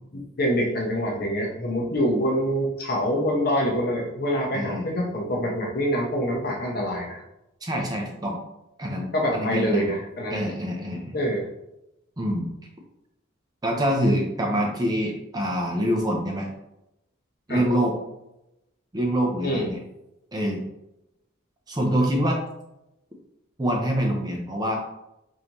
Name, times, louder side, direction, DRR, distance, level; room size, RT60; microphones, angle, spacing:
voice 1, 0.4-7.2 9.1-10.4 11.1-11.5 17.5-17.6 19.4-19.7, equal, 45° left, -1 dB, 0.9 m, -25 dB
voice 2, 4.5-4.8 7.6-8.4 8.8-9.9 10.3-11.2 12.2-12.5 13.6-16.5 17.5-18.0 18.9-19.8 20.3-20.6 21.7-22.4 23.6-24.8, equal, 20° right, 1 dB, 0.5 m, -25 dB
5.1 x 2.6 x 2.9 m, 0.88 s
head